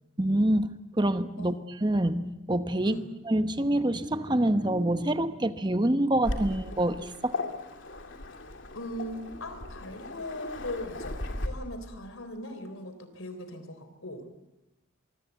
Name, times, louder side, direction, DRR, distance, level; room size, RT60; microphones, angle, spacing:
voice 1, 0.2-1.5 1.8-3.0 3.3-7.4, right 1 dB, 20° right, 10 dB, 0.9 m, -26 dB
Waves surf, 6.2-11.5, left 2 dB, 65° left, 2.6 m, -37 dB
voice 2, 8.7-14.3, left 1 dB, 85° left, 10 dB, 3.6 m, -39 dB
24.5 x 24.0 x 8.2 m, 0.96 s
head